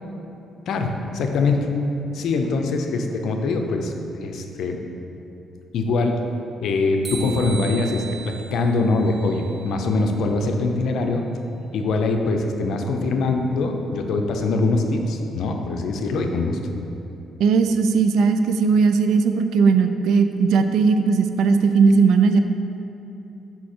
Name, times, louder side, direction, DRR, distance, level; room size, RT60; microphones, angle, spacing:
voice 1, 0.7-1.6 2.1-4.8 5.7-6.2 6.6-11.2 11.7-16.6, left 3 dB, 75° left, 4 dB, 0.7 m, -23 dB
sound 1, 7.0-10.1, right 4 dB, 40° right, 0.9 m, -38 dB
voice 2, 17.4-22.4, right 5 dB, 80° right, 8 dB, 0.4 m, -18 dB
6.2 x 5.6 x 4.4 m, 3.0 s
cardioid pair, 90°, 0 cm